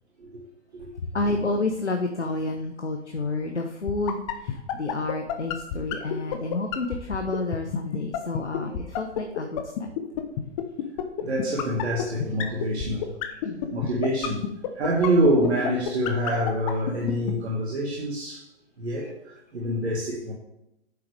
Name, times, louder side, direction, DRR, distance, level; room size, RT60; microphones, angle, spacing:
voice 1, 1.1-9.9 13.4-13.7, left 2 dB, 85° left, 4 dB, 1.0 m, -30 dB
sound 1, 3.9-17.3, left 15 dB, 30° left, 1.0 m, -27 dB
voice 2, 11.2-13.1 13.7-18.5 18.8-20.3, right 1 dB, 70° right, -4 dB, 2.0 m, -26 dB
9.3 x 7.1 x 3.4 m, 0.88 s
figure-of-eight pair, 120°, 34 cm